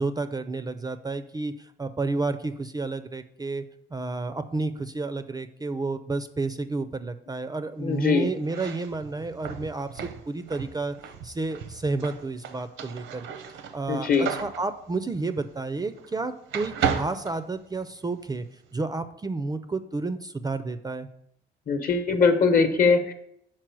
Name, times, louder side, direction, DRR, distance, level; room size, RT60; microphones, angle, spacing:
voice 1, 0.0-3.6 3.9-11.0 11.2-13.3 13.5-18.4 18.7-21.1, right 3 dB, 20° right, 10 dB, 0.4 m, -31 dB
voice 2, 7.8-8.3 13.9-14.3 21.7-23.1, left 5 dB, 45° left, 8 dB, 0.9 m, -21 dB
sound 1, 8.4-16.2 16.5-18.1, right 7 dB, 85° right, 0.8 m, -34 dB
6.1 x 4.3 x 4.6 m, 0.73 s
cardioid pair, 90°, 20 cm